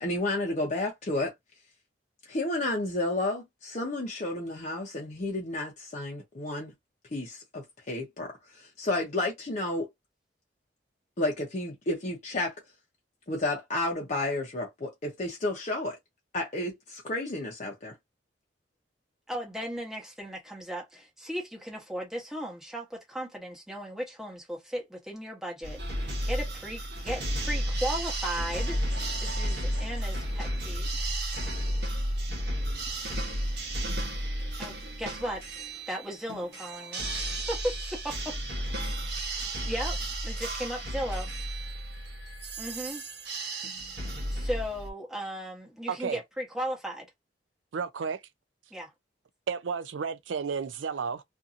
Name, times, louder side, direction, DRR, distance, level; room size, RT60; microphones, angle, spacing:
voice 1, 0.0-1.3 2.3-6.7 7.1-9.9 11.2-12.5 13.3-16.0 16.3-17.9, left 2 dB, 40° left, 0.8 m, -31 dB
voice 2, 19.3-30.9 34.6-35.4 35.9-37.7 39.7-40.0 40.2-41.3 42.6-43.0 44.0-47.1 48.7-48.9, equal, ahead, 1.0 m, -36 dB
sound 1, 25.6-44.9, right 1 dB, 60° right, 1.0 m, -33 dB
voice 3, 45.9-46.2 47.7-48.2 49.5-51.2, right 6 dB, 80° right, 0.4 m, -32 dB
2.7 x 2.6 x 2.4 m
head